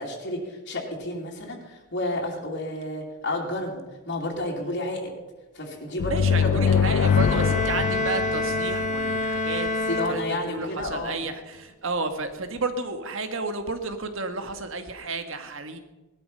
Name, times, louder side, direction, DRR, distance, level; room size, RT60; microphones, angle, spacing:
voice 1, 0.0-5.1 5.5-7.5 9.9-11.3, left 1 dB, 55° left, -3 dB, 2.9 m, -31 dB
sound 1, 6.0-9.6, left 7 dB, 85° left, 0.4 m, -24 dB
voice 2, 6.1-15.8, right 3 dB, 65° right, 8 dB, 1.6 m, -32 dB
sound 2, 7.0-10.8, left 2 dB, 35° left, 1.4 m, -28 dB
19.0 x 12.5 x 5.5 m, 1.2 s
head